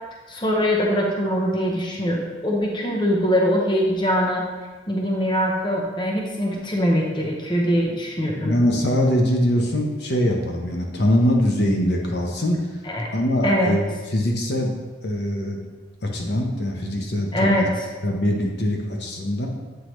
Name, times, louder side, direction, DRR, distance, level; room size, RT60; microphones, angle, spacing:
voice 1, 0.3-4.4 4.9-8.6 12.9-13.1 13.4-13.7 17.3-17.7, equal, 25° left, -1 dB, 0.8 m, -22 dB
voice 2, 8.4-12.8 13.1-14.7 15.0-15.6 16.0-17.7 18.0-19.5, equal, 60° left, 1 dB, 0.9 m, -22 dB
8.2 x 4.7 x 3.1 m, 1.3 s
head